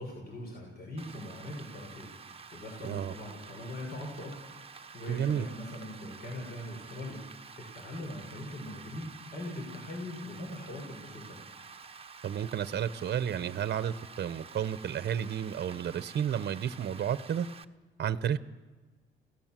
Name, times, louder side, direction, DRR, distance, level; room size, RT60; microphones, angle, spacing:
voice 1, 0.0-4.4 4.7-7.2 7.6-11.5, left 1 dB, 50° left, 0 dB, 5.8 m, -41 dB
Rain, 1.0-17.6, right 5 dB, 30° right, 1.0 m, -49 dB
voice 2, 2.8-3.1 5.1-5.5 12.2-17.5 18.0-18.4, right 9 dB, 55° right, 13 dB, 1.0 m, -32 dB
28.0 x 17.5 x 7.6 m, 1.3 s
cardioid pair, 90°, 20 cm